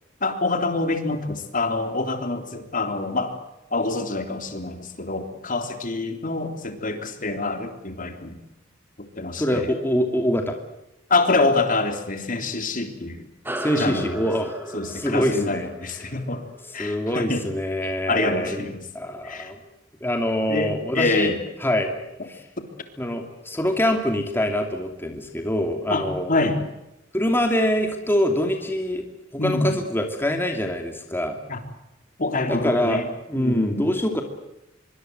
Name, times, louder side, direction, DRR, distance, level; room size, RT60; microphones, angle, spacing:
voice 1, 0.2-3.4 3.7-8.4 9.2-9.7 11.1-13.3 13.8-14.2 14.7-16.4 16.7-17.4 17.8-18.8 19.2-19.5 20.5-21.4 25.9-26.6 29.4-29.8 31.5-31.6 32.2-33.1 33.3-33.9, left 3 dB, 45° left, 7 dB, 3.5 m, -26 dB
voice 2, 9.4-10.6 13.6-14.5 14.9-15.7 15.9-16.0 16.8-18.6 18.9-19.6 20.0-21.3 21.6-21.9 22.3-22.4 23.0-26.3 27.1-29.0 29.3-31.4 32.5-33.0 33.3-34.2, equal, 10° left, 4 dB, 2.7 m, -24 dB
sound 1, 13.4-18.3, right 1 dB, 10° right, 2.6 m, -37 dB
25.5 x 24.0 x 7.9 m, 0.90 s
head